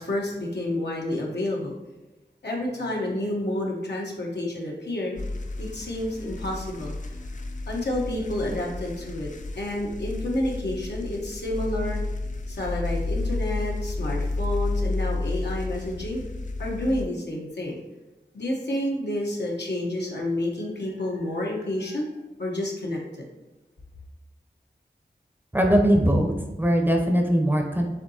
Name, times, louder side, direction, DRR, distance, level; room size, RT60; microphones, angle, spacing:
voice 1, 0.0-1.7 2.4-5.2 5.6-6.9 7.7-9.3 9.6-12.0 12.5-16.2 16.6-17.8 18.3-22.1 22.4-23.2, left 1 dB, 80° left, -2 dB, 1.1 m, -29 dB
sound 1, 5.2-17.1, left 2 dB, 45° left, 0.4 m, -31 dB
voice 2, 25.5-27.9, equal, 10° right, 2 dB, 0.6 m, -21 dB
7.1 x 2.7 x 2.8 m, 1.1 s
wide cardioid pair, 65°, 18 cm